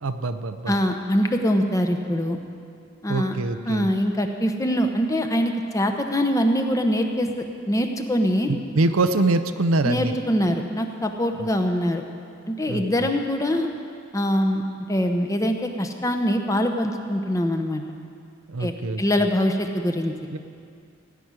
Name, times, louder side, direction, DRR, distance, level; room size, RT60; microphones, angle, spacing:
voice 1, 0.0-0.7 3.0-3.9 8.5-10.2 12.7-13.1 18.5-19.0 20.3-20.4, right 2 dB, 80° right, 10 dB, 0.7 m, -24 dB
voice 2, 0.7-2.4 3.0-3.4 3.7-8.5 9.8-12.0 12.5-13.7 14.1-14.6 14.9-17.8 18.6-20.1, equal, 15° left, 4 dB, 0.8 m, -23 dB
16.0 x 6.1 x 9.6 m, 2.4 s
head